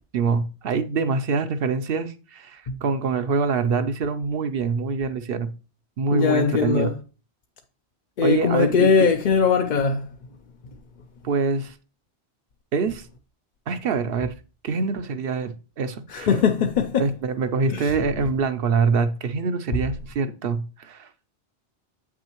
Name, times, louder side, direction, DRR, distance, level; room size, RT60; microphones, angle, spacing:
voice 1, 0.1-5.5 6.0-6.9 8.2-9.1 11.2-11.7 12.7-13.1 13.7-14.3 14.6-16.3 17.0-21.1, right 4 dB, 65° right, 0.8 m, -25 dB
voice 2, 6.1-6.9 8.2-10.0 16.1-17.1 17.7-17.9, left 5 dB, 55° left, 0.6 m, -20 dB
8.0 x 6.2 x 3.0 m
omnidirectional pair, 1.1 m